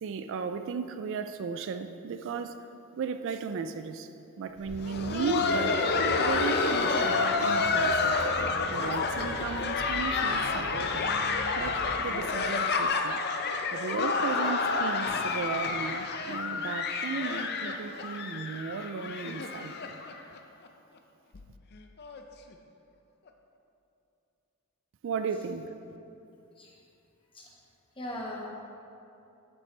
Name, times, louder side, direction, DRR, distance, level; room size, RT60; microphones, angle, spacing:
voice 1, 0.0-2.6 3.0-4.1 4.4-5.8 6.2-8.2 8.7-11.1 11.6-13.2 13.7-19.8 25.0-25.7, right 5 dB, 60° right, 9 dB, 0.3 m, -35 dB
Laughter, 4.7-20.4 20.6-20.7 21.3-21.5 22.0-22.2 23.3-23.4, left 4 dB, 50° left, 0.5 m, -29 dB
sound 1, 4.7-12.0, right 1 dB, 80° right, 1.3 m, -43 dB
voice 2, 27.9-28.5, left 1 dB, 25° left, -4 dB, 1.3 m, -38 dB
8.6 x 7.8 x 3.3 m, 2.8 s
head